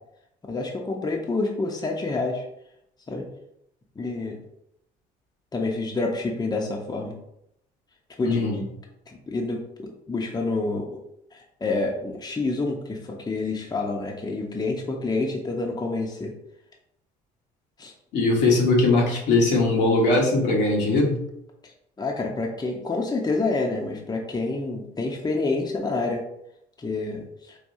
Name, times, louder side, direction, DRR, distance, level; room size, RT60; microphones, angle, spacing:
voice 1, 0.4-2.4 3.1-3.3 4.0-4.4 5.5-7.2 8.2-8.4 9.1-11.0 11.3-16.3 17.8-17.9 21.6-21.7 22.0-26.2 26.8-27.6, left 3 dB, 20° left, 1 dB, 0.8 m, -28 dB
voice 2, 8.2-8.6 18.1-21.2, left 2 dB, 70° left, -1 dB, 1.2 m, -20 dB
4.8 x 2.6 x 2.7 m, 0.78 s
supercardioid pair, 70°, 19 cm